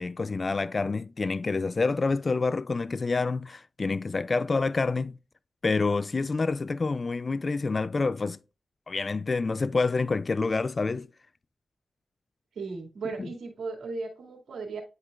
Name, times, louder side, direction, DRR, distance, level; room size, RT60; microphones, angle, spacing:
voice 1, 0.0-5.2 5.6-8.4 8.9-11.1 13.2-13.3, left 3 dB, 50° left, 0.3 m, -27 dB
voice 2, 12.5-14.8, right 4 dB, 85° right, 2.3 m, -36 dB
10.5 x 4.5 x 2.4 m
cardioid pair, 50°, 0 cm